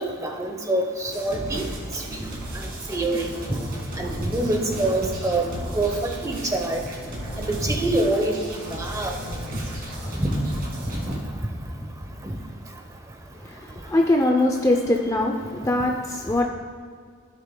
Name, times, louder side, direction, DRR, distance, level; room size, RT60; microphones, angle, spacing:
voice 1, 0.0-1.6 1.9-2.0 2.9-3.3 4.0-5.4 5.7-6.8 7.4-8.4 8.7-9.2 10.2-10.4 11.1-11.2 12.2-12.3, right 2 dB, 15° right, 3 dB, 0.8 m, -25 dB
sound 1, 1.1-11.2, right 1 dB, 45° right, 2.2 m, -34 dB
voice 2, 13.4-16.5, left 1 dB, 15° left, 1 dB, 0.4 m, -22 dB
15.5 x 6.6 x 2.2 m, 2.1 s
head